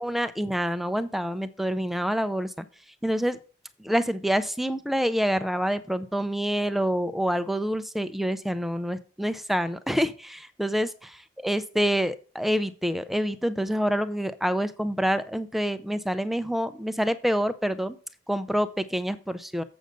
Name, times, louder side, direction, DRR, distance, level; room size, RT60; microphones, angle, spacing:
voice 1, 0.0-2.5 3.0-3.4 3.8-11.1 11.4-18.0 18.3-19.6, equal, ahead, 10 dB, 0.5 m, -27 dB
8.0 x 6.4 x 5.1 m, 0.38 s
head